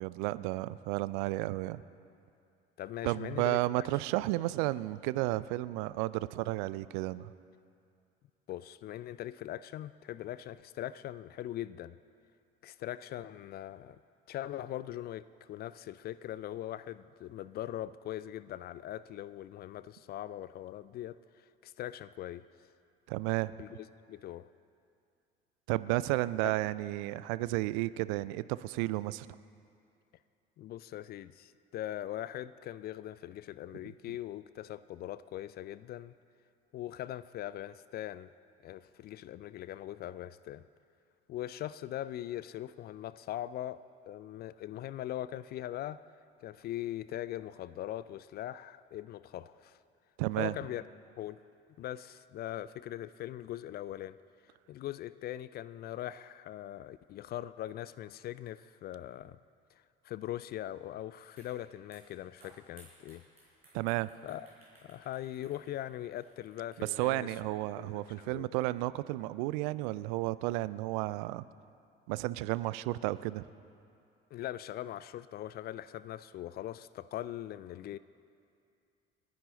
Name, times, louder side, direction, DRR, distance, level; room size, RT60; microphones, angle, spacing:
voice 1, 0.0-1.8 3.0-7.3 23.1-23.6 25.7-29.3 50.2-50.5 63.7-64.1 66.8-71.4 72.1-73.4, right 18 dB, 55° right, 17 dB, 0.5 m, -32 dB
voice 2, 2.8-3.9 8.5-12.0 12.6-14.0 14.3-22.5 23.6-24.5 30.6-36.1 36.7-38.3 38.6-40.6 41.3-46.0 46.4-49.8 50.4-50.8 51.2-51.4 51.8-54.2 54.7-59.4 59.7-63.3 64.2-64.5 64.8-67.3 67.8-68.5 74.3-78.0, left 13 dB, 35° left, 16 dB, 0.4 m, -41 dB
sound 1, 61.4-61.5 61.8-67.2, right 2 dB, 90° right, 4.2 m, -61 dB
29.5 x 10.0 x 3.9 m, 2.5 s
figure-of-eight pair, 55°, 30 cm